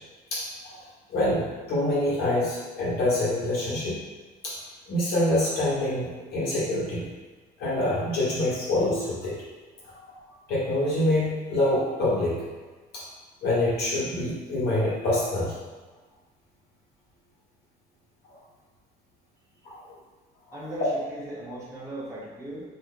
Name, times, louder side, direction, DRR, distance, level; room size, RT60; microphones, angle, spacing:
voice 1, 0.3-0.8 1.1-4.0 4.4-4.5 4.9-7.1 7.6-9.3 10.5-12.3 12.9-13.0 13.4-15.5 19.6-19.8, left 1 dB, 70° left, -7 dB, 1.2 m, -26 dB
voice 2, 20.5-22.6, right 1 dB, 15° right, -7 dB, 0.8 m, -37 dB
2.7 x 2.1 x 3.6 m, 1.3 s
cardioid pair, 110°, 17 cm